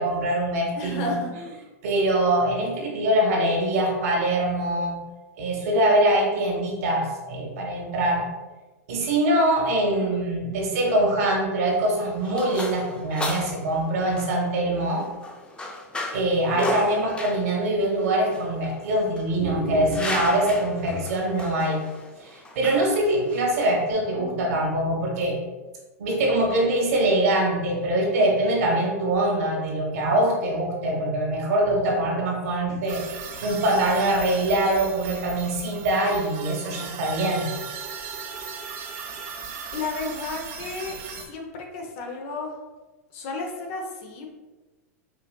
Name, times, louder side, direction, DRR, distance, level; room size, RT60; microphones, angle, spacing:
voice 1, 0.0-1.1 1.8-5.0 5.4-8.2 8.9-15.1 16.1-21.8 22.2-25.4 26.0-33.0 33.4-37.5, right 1 dB, 65° right, -1 dB, 1.1 m, -23 dB
voice 2, 0.8-1.4 9.9-10.2 16.4-16.8 39.1-39.3 39.7-42.6 43.1-44.3, left 3 dB, 55° left, 2 dB, 0.8 m, -34 dB
sound 1, 11.6-23.9, left 2 dB, 10° left, 0.4 m, -35 dB
sound 2, 32.9-41.2, right 6 dB, 45° right, 0.6 m, -37 dB
4.9 x 2.6 x 2.2 m, 1.2 s
hypercardioid pair, 110°, 9 cm